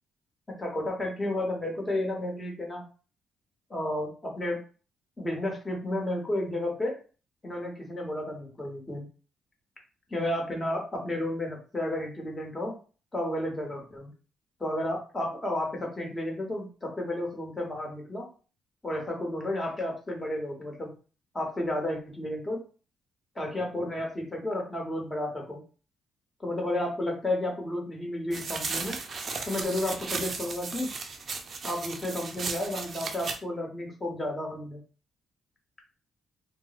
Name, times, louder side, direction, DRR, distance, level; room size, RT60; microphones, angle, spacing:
voice 1, 0.6-2.8 3.7-4.6 5.2-7.0 7.4-9.0 10.1-12.8 13.1-14.1 14.6-18.3 18.8-20.9 21.3-22.6 23.3-25.6 26.4-29.0 29.4-30.9 31.6-34.8, left 1 dB, 20° left, 0 dB, 1.3 m, -32 dB
sound 1, 28.3-33.4, right 4 dB, 45° right, 0.5 m, -35 dB
2.5 x 2.1 x 3.9 m, 0.36 s
cardioid pair, 90°, 0 cm